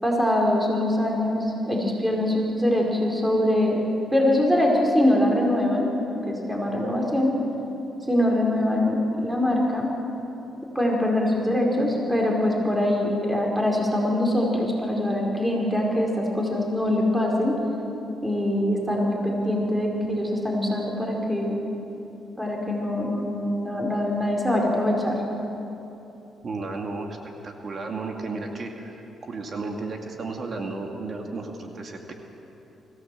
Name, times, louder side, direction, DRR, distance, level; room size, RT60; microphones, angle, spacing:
voice 1, 0.0-3.8 4.1-5.9 6.3-7.3 8.1-9.9 10.7-17.6 18.2-21.6 22.4-25.1, left 1 dB, 10° right, -1 dB, 4.6 m, -23 dB
voice 2, 26.4-27.2 27.4-28.9 29.2-32.1, right 3 dB, 45° right, 2 dB, 2.3 m, -33 dB
24.0 x 16.0 x 7.7 m, 3.0 s
cardioid pair, 90°, 0 cm